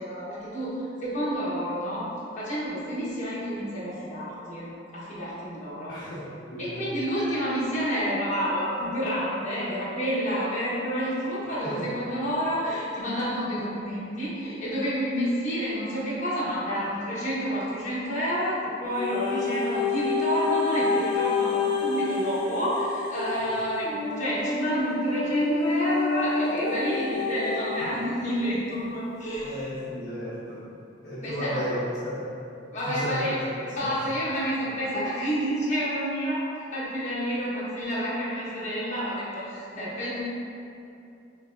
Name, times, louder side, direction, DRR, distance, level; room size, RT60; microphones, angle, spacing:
voice 1, 0.0-2.0 2.4-6.0 6.6-29.7 31.2-31.7 32.7-33.4 33.7-40.2, equal, 40° left, -9 dB, 1.2 m, -29 dB
voice 2, 5.9-6.8 11.6-11.9 27.8-27.9 29.4-30.7 31.0-32.3 32.8-33.3 33.8-33.9, equal, 65° left, -10 dB, 0.9 m, -34 dB
sound 1, 19.0-28.1 28.7-28.8, left 4 dB, 25° left, 0.5 m, -28 dB
5.9 x 3.3 x 2.6 m, 2.6 s
head